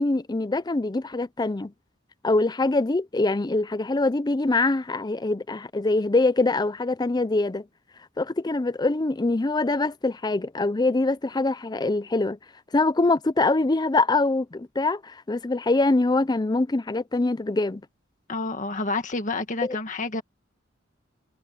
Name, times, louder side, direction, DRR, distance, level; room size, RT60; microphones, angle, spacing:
voice 1, 0.0-1.7 2.2-7.6 8.2-12.4 12.7-17.8 19.6-19.8, left 2 dB, 20° left, 0.5 m, -24 dB
voice 2, 18.3-20.2, left 3 dB, 40° left, 1.8 m, -29 dB
head